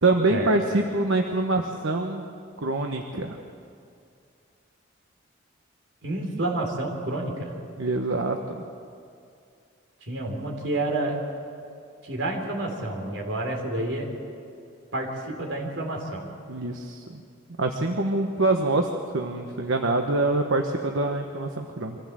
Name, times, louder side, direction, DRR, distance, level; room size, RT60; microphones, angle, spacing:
voice 1, 0.0-2.2 2.6-3.4 7.8-8.6 16.5-17.2 17.6-22.0, right 2 dB, 85° right, 3 dB, 1.1 m, -25 dB
voice 2, 6.0-7.5 10.1-11.2 12.0-14.1 14.9-16.3, right 2 dB, 70° right, 0 dB, 3.7 m, -29 dB
24.5 x 15.0 x 7.5 m, 2.4 s
head